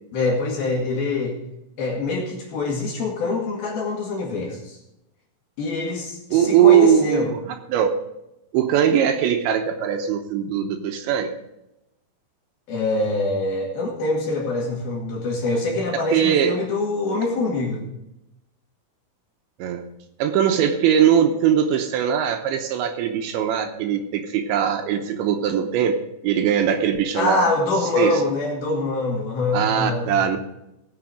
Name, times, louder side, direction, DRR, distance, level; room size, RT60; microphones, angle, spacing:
voice 1, 0.1-1.4 1.8-4.8 5.6-7.3 12.7-17.8 27.1-30.1, left 3 dB, 60° left, -2 dB, 3.6 m, -24 dB
voice 2, 6.3-7.4 7.7-7.9 8.5-11.3 16.1-16.5 19.6-19.8 20.2-26.0 26.2-27.5 28.0-28.2 29.5-30.4, right 9 dB, 80° right, 6 dB, 3.1 m, -20 dB
18.0 x 6.9 x 5.1 m, 0.87 s
omnidirectional pair, 5.5 m